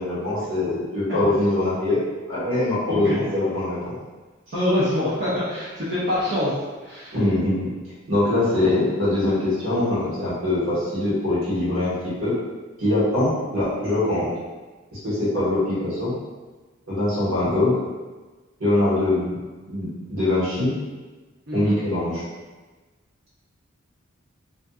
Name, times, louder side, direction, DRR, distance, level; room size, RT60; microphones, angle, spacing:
voice 1, 0.0-2.0 2.3-4.0 7.1-7.7 8.1-12.4 12.8-14.3 15.0-16.1 16.9-17.8 18.6-19.3 19.6-20.7 21.5-22.2, left 2 dB, 80° right, -9 dB, 1.2 m, -23 dB
voice 2, 4.5-6.5 6.8-7.2 21.5-21.8, left 1 dB, 55° right, -10 dB, 0.6 m, -25 dB
2.6 x 2.3 x 2.3 m, 1.3 s
head